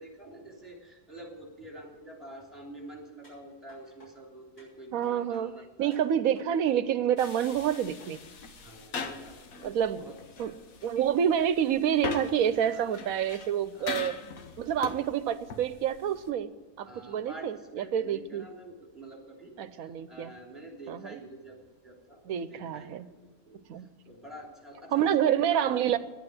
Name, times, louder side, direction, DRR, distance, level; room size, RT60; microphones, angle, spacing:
voice 1, 0.0-6.1 8.5-9.4 9.7-10.5 12.6-13.2 13.7-14.0 16.8-23.1 23.4-26.0, right 1 dB, ahead, -1 dB, 3.2 m, -48 dB
sound 1, 3.2-4.1 4.6-5.4 5.9-6.8 7.2-8.1 8.6-8.7, equal, 90° left, 6.5 m, -57 dB
voice 2, 4.9-5.5 5.8-8.2 9.6-10.1 10.4-10.5 10.8-14.2 14.6-16.5 16.8-18.4 19.6-20.3 20.9-21.2 22.3-23.1 23.7-23.9 24.9-26.0, right 9 dB, 75° right, 13 dB, 1.1 m, -28 dB
sound 2, 7.2-16.3, left 5 dB, 70° left, 1.5 m, -41 dB
11.0 x 8.9 x 9.2 m, 1.3 s
omnidirectional pair, 1.5 m